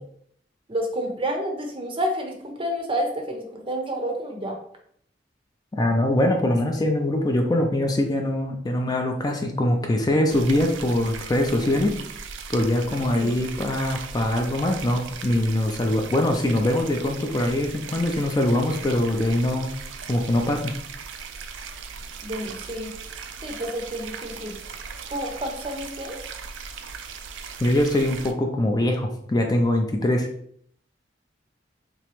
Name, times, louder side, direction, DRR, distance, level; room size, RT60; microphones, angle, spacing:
voice 1, 0.7-4.6 13.1-13.4 22.2-22.9 23.4-24.5 25.1-26.2, equal, 30° right, 3 dB, 0.6 m, -29 dB
voice 2, 5.7-11.9 12.5-19.7 20.1-20.7 27.6-30.3, left 1 dB, 20° left, 3 dB, 0.4 m, -23 dB
sound 1, 10.3-28.3, right 5 dB, 90° right, 0.4 m, -38 dB
3.3 x 3.0 x 3.0 m, 0.65 s
head